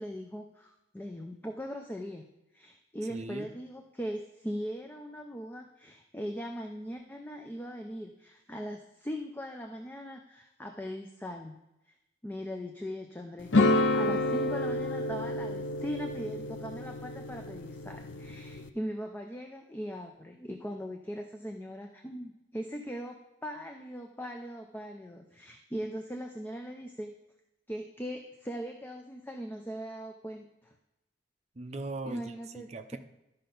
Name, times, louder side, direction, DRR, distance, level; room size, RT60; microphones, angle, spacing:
voice 1, 0.0-2.2 2.5-11.6 11.9-12.0 12.2-27.1 27.7-30.7 32.0-32.7, equal, 10° left, 3 dB, 0.5 m, -40 dB
voice 2, 3.1-3.5 31.6-33.0, right 2 dB, 35° right, 7 dB, 0.6 m, -39 dB
sound 1, 13.5-18.7, left 2 dB, 90° left, 0.6 m, -29 dB
12.0 x 5.6 x 3.9 m, 0.94 s
head